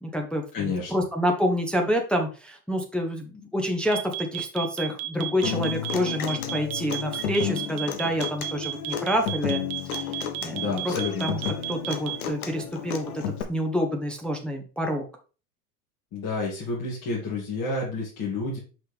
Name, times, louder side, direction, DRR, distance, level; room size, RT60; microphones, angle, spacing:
voice 1, 0.0-10.0 10.4-10.9 11.2-11.4 11.7-13.2 13.5-15.0, equal, ahead, 1 dB, 0.9 m, -28 dB
voice 2, 0.5-0.9 10.5-11.3 16.1-18.6, left 3 dB, 45° left, -5 dB, 2.5 m, -30 dB
sound 1, 3.9-12.3, right 16 dB, 45° right, 0.9 m, -32 dB
Human voice / Acoustic guitar, 5.4-13.4, left 8 dB, 70° left, 1.2 m, -32 dB
5.8 x 5.6 x 3.3 m, 0.35 s
hypercardioid pair, 85°, 47 cm